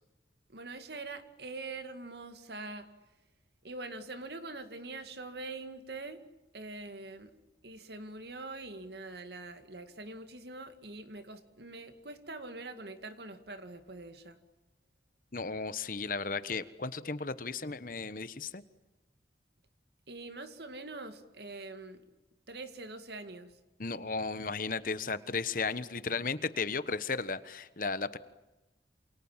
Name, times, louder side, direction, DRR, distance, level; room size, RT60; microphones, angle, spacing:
voice 1, 0.5-2.9 3.6-6.2 6.5-7.3 7.6-14.4 20.1-22.0 22.5-23.6, right 3 dB, 70° right, 9 dB, 2.3 m, -44 dB
voice 2, 15.3-18.6 23.8-28.2, left 4 dB, 50° left, 14 dB, 1.2 m, -35 dB
28.5 x 27.5 x 7.4 m, 1.1 s
head